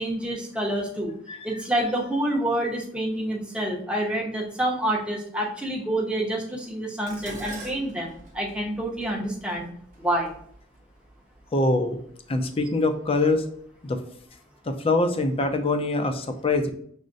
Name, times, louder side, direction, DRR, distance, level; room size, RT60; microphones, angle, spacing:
voice 1, 0.0-1.1 1.4-9.7 10.0-10.3, right 1 dB, 5° right, -2 dB, 0.7 m, -27 dB
Dishes pots and pans, 7.1-11.4 12.3-12.7 13.1-13.9 14.2-14.3, right 2 dB, 40° right, 0.8 m, -44 dB
voice 2, 11.5-12.0 12.3-13.5 13.8-14.0 14.7-16.7, left 2 dB, 30° left, 6 dB, 0.4 m, -24 dB
6.2 x 2.1 x 2.5 m, 0.63 s
head